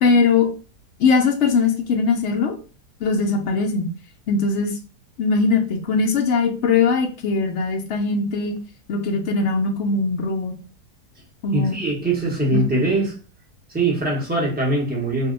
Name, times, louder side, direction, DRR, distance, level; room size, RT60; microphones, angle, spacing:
voice 1, 0.0-0.5 1.0-2.6 3.0-3.9 4.3-4.8 5.2-8.5 8.9-10.5 11.4-11.8 12.5-12.6, left 4 dB, 80° left, 2 dB, 0.6 m, -20 dB
voice 2, 11.5-13.2 13.7-15.3, right 2 dB, 10° right, -4 dB, 0.6 m, -22 dB
2.7 x 2.1 x 3.7 m, 0.38 s
omnidirectional pair, 1.7 m